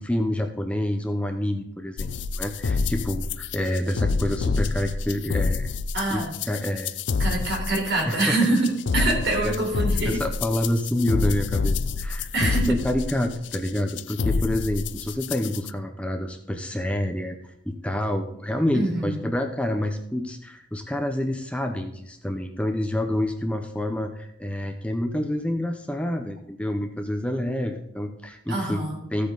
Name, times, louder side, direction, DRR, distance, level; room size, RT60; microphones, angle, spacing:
voice 1, 0.0-5.7 6.1-6.9 8.0-8.4 9.4-9.5 10.1-17.4 17.6-28.8 29.1-29.3, left 1 dB, 5° left, 4 dB, 0.9 m, -28 dB
sound 1, 2.0-15.7, left 4 dB, 70° left, 0.5 m, -27 dB
voice 2, 5.9-6.4 7.2-10.2 12.3-12.8 18.7-19.2 28.5-29.0, right 2 dB, 60° right, -1 dB, 4.3 m, -25 dB
15.0 x 8.6 x 4.1 m, 0.72 s
head